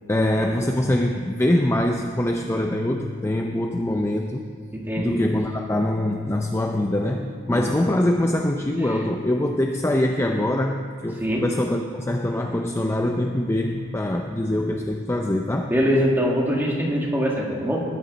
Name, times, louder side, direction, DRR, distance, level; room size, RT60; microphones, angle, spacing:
voice 1, 0.1-4.4 5.0-15.7, left 1 dB, 10° left, 3 dB, 0.4 m, -23 dB
voice 2, 4.7-5.2 7.5-7.7 11.2-11.4 15.7-17.8, equal, 10° right, -2 dB, 1.8 m, -23 dB
20.0 x 10.0 x 4.1 m, 2.1 s
head